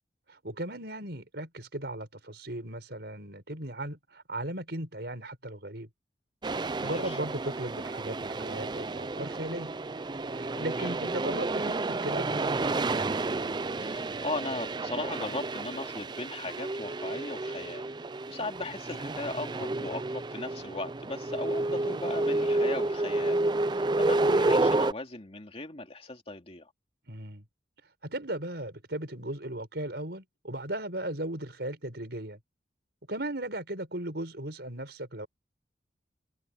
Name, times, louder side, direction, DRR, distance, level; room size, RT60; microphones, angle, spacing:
voice 1, 0.3-5.9 6.5-9.7 10.3-12.6 27.1-27.4 28.0-32.4 33.1-35.3, right 1 dB, 65° right, 6.2 m, -37 dB
sound 1, 6.4-24.9, right 2 dB, 25° right, 0.5 m, -30 dB
voice 2, 6.8-7.2 10.8-11.0 13.8-17.9 18.3-26.7, left 2 dB, 35° left, 2.8 m, -38 dB
head